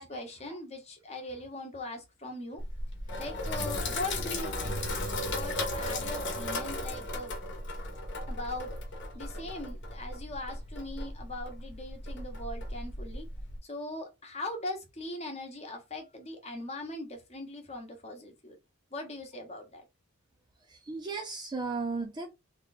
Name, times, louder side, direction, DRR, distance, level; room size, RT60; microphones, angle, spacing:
voice 1, 0.0-2.6 3.2-4.8 5.3-7.3 8.3-8.7 9.1-13.3 13.6-18.6 18.9-19.8, left 2 dB, 30° left, 0.9 m, -40 dB
Sink (filling or washing), 2.6-13.6, left 1 dB, 50° left, 1.0 m, -36 dB
voice 2, 20.7-22.3, right 4 dB, 20° right, 0.4 m, -36 dB
3.0 x 2.3 x 4.0 m
head